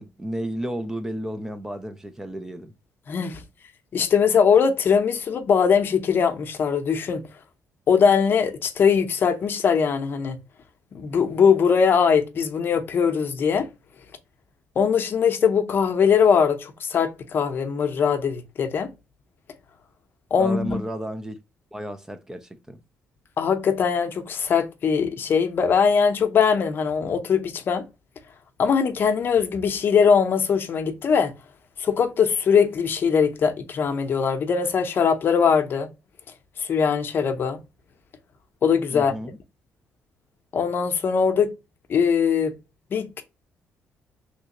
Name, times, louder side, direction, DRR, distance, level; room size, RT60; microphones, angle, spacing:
voice 1, 0.0-2.7 20.4-21.4 21.7-22.8 38.9-39.4, right 1 dB, 10° right, 0.4 m, -32 dB
voice 2, 3.1-3.4 3.9-7.2 7.9-10.4 10.9-13.7 14.8-18.9 20.3-20.8 23.4-27.8 28.6-31.3 31.8-35.9 36.6-37.6 38.6-39.1 40.5-41.5 41.9-42.5 42.9-43.2, left 6 dB, 50° left, 0.7 m, -21 dB
3.2 x 3.1 x 2.9 m
cardioid pair, 125°, 5 cm